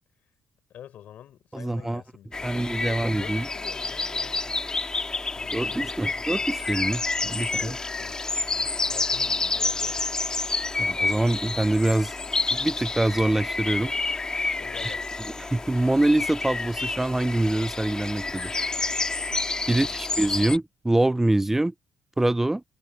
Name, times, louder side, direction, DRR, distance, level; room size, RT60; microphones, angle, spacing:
voice 1, 0.7-4.8 5.4-6.3 7.6-10.2 14.5-15.1 19.7-20.0, left 10 dB, 70° left, 3.8 m, -47 dB
voice 2, 1.5-2.0 2.4-3.5 5.5-7.8 10.8-12.2 12.5-13.9 14.8-14.9 15.4-18.5 19.7-21.7 22.2-22.6, right 1 dB, 10° right, 0.5 m, -25 dB
sound 1, 2.3-20.6, left 3 dB, 25° left, 2.1 m, -29 dB
cardioid pair, 75°, 3 cm